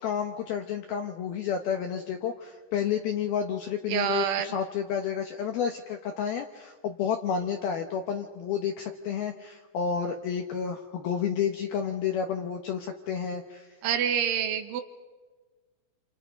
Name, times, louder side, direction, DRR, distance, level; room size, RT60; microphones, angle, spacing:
voice 1, 0.0-13.7, left 7 dB, 75° left, 4 dB, 2.3 m, -30 dB
voice 2, 3.9-4.5 13.8-14.8, right 9 dB, 75° right, 8 dB, 3.5 m, -27 dB
29.0 x 28.5 x 5.2 m, 1.4 s
omnidirectional pair, 5.9 m